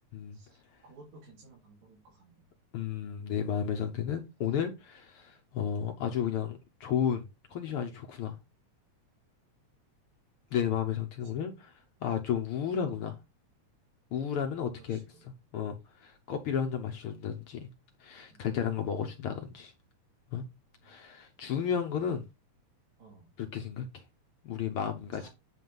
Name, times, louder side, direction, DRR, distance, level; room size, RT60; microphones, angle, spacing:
voice 1, 0.3-2.5 3.9-4.1 6.0-6.3 14.8-15.3 18.3-18.5 23.0-23.3 24.8-25.3, right 3 dB, 65° right, 3.7 m, -56 dB
voice 2, 2.7-8.4 10.5-11.7 12.0-13.1 14.1-15.0 15.5-17.7 18.0-19.7 20.3-20.4 20.8-22.2 23.4-24.0 24.4-25.3, left 8 dB, 65° left, 1.4 m, -33 dB
9.1 x 3.3 x 5.3 m
omnidirectional pair, 3.5 m